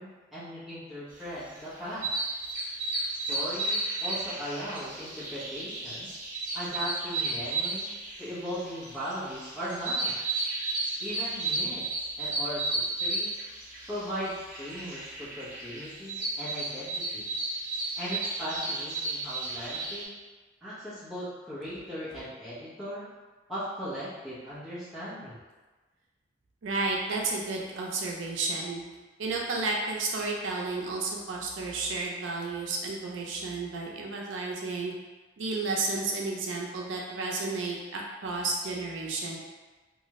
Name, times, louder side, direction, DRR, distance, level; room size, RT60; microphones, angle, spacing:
voice 1, 0.0-2.1 3.1-6.1 6.5-7.9 8.2-10.1 11.0-11.8 12.2-13.3 13.9-17.3 18.0-20.1 20.6-23.0 23.5-25.4, equal, ahead, -13 dB, 1.0 m, -38 dB
sound 1, 1.4-20.0, right 2 dB, 45° right, 0.6 m, -33 dB
voice 2, 26.6-28.8 29.2-34.9 35.4-39.4, right 3 dB, 85° right, -2 dB, 0.5 m, -32 dB
2.5 x 2.3 x 3.0 m, 1.3 s
head